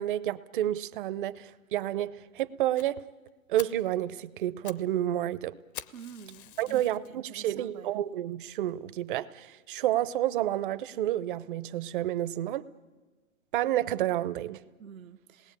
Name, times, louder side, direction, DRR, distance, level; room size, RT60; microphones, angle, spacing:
voice 1, 0.0-3.0 3.5-5.6 6.6-12.7 13.5-14.6, right 13 dB, 40° right, 0.7 m, -30 dB
Fire, 2.8-2.9 3.3-3.4 3.6-3.9 4.4-4.9 5.1-5.2 5.7-7.1 7.7-7.8 8.3-8.4 8.7-8.8 9.1-9.2, left 12 dB, 40° left, 0.7 m, -45 dB
voice 2, 5.9-6.8 7.1-7.9 14.8-15.6, right 8 dB, 85° right, 1.0 m, -47 dB
27.0 x 19.5 x 8.8 m
hypercardioid pair, 150°, 40 cm